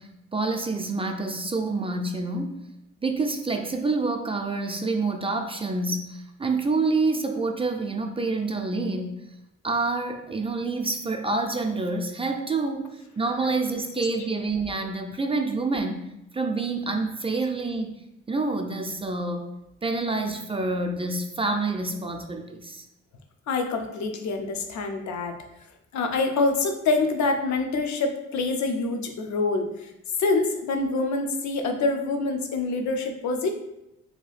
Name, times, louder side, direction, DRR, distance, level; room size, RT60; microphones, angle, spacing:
voice 1, 0.0-2.6 3.0-9.2 9.6-12.9 13.2-17.9 18.3-19.5 19.8-22.8, right 3 dB, 20° right, 3 dB, 0.4 m, -27 dB
voice 2, 23.5-25.4 25.9-29.9 30.2-33.5, left 3 dB, 65° left, 5 dB, 0.5 m, -26 dB
2.8 x 2.3 x 3.2 m, 0.88 s
supercardioid pair, 50°, 31 cm